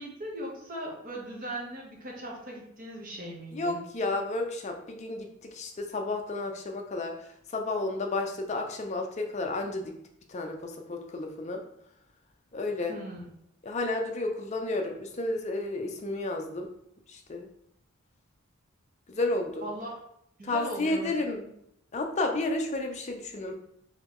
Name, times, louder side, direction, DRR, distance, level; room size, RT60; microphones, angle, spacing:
voice 1, 0.0-3.8 12.9-13.3 19.6-19.9 20.4-21.5, right 1 dB, 40° right, -2 dB, 1.0 m, -39 dB
voice 2, 3.5-7.1 7.5-9.9 10.3-11.6 12.5-13.0 13.6-16.7 17.1-17.5 19.1-19.6 20.4-21.4 21.9-23.5, left 2 dB, 35° left, 3 dB, 0.5 m, -31 dB
3.9 x 3.0 x 3.0 m, 0.75 s
head